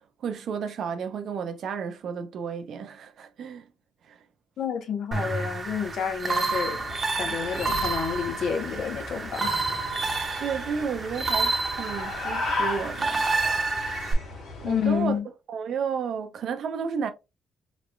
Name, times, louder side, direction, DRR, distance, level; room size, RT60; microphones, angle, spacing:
voice 1, 0.2-3.7 4.0-4.2 10.4-13.3 14.6-15.2 15.5-17.1, right 6 dB, 65° right, 0.5 m, -32 dB
voice 2, 4.6-6.8 7.2-9.7 14.6-15.2, left 7 dB, 65° left, 0.8 m, -29 dB
sound 1, 5.1-14.1, right 3 dB, 35° right, 0.8 m, -29 dB
sound 2, 6.5-15.1, left 2 dB, 80° left, 1.7 m, -36 dB
4.1 x 3.0 x 2.2 m
cardioid pair, 90°, 0 cm